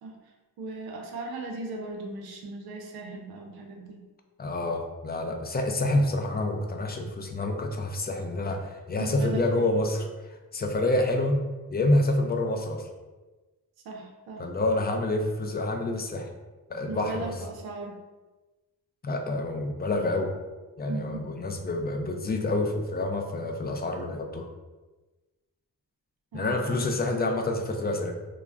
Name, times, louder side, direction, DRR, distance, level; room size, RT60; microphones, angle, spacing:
voice 1, 0.6-4.0 9.0-9.7 13.8-14.4 16.9-18.0 20.9-21.3 26.3-26.8, right 3 dB, 85° right, 1 dB, 0.5 m, -37 dB
voice 2, 4.4-10.1 10.5-11.4 11.7-12.9 14.4-16.3 16.7-17.3 19.0-20.3 20.8-24.5 26.3-28.1, left 2 dB, 30° left, 4 dB, 0.3 m, -27 dB
2.3 x 2.0 x 3.3 m, 1.2 s
cardioid pair, 60°, 36 cm